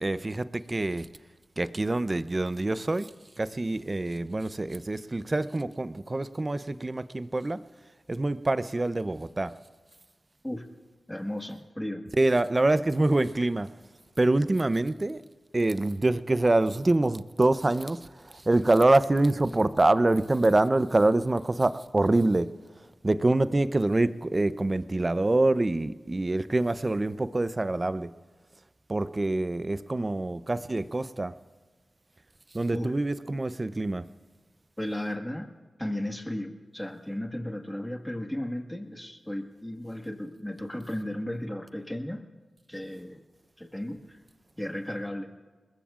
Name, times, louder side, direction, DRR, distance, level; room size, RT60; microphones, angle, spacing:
voice 1, 0.0-1.1 1.6-3.1 3.4-7.6 8.1-9.5 12.2-13.7 14.2-15.2 15.5-22.5 23.0-28.1 28.9-31.3 32.5-34.0, right 2 dB, 30° right, 13 dB, 0.6 m, -25 dB
voice 2, 11.1-12.1 32.7-32.9 34.8-35.5 35.8-42.2 42.7-43.2 43.6-44.2 44.6-45.3, left 1 dB, 10° left, 4 dB, 1.6 m, -35 dB
26.5 x 21.0 x 2.5 m, 1.4 s
cardioid pair, 65°, 0 cm